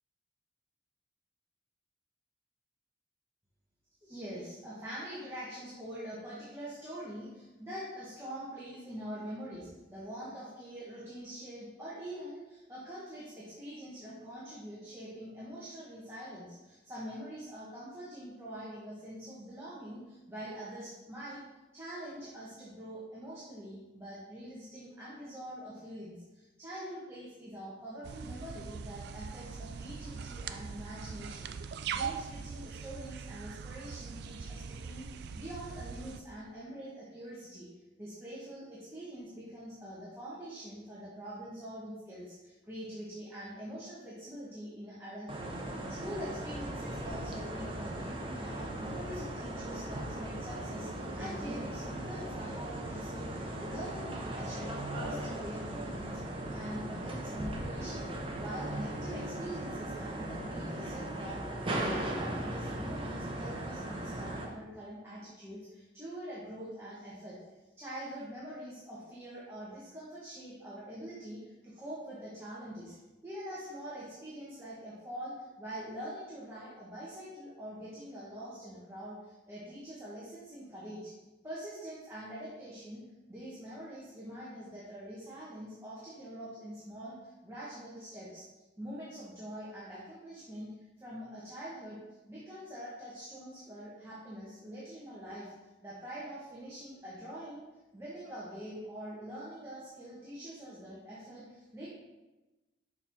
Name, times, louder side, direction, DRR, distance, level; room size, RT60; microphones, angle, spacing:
voice 1, 4.0-21.4 21.7-37.7 38.0-45.5 45.9-56.2 56.5-58.1 58.4-67.4 67.8-73.0 73.2-81.1 81.4-83.0 83.3-88.5 88.8-90.7 91.0-92.0 92.3-95.5 95.8-97.6 97.9-101.9, equal, 15° right, -8 dB, 1.3 m, -44 dB
sound 1, 28.0-36.2, right 6 dB, 65° right, 0.4 m, -41 dB
sound 2, 45.3-64.4, right 1 dB, 30° right, 0.8 m, -38 dB
6.7 x 4.7 x 3.6 m, 1.1 s
head